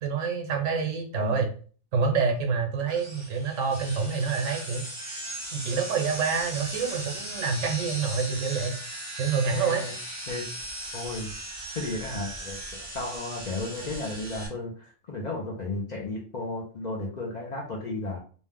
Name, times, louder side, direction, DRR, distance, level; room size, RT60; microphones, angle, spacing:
voice 1, 0.0-1.5 1.9-4.8 5.5-8.8 9.2-9.8, right 5 dB, 85° right, 3 dB, 1.1 m, -27 dB
voice 2, 1.1-1.4 9.5-9.9 10.3-10.5 10.9-11.3 11.8-18.2, left 2 dB, 50° left, -2 dB, 0.5 m, -34 dB
sound 1, 2.9-14.5, right 1 dB, 15° right, 0.8 m, -38 dB
2.6 x 2.1 x 3.4 m, 0.42 s
omnidirectional pair, 1.3 m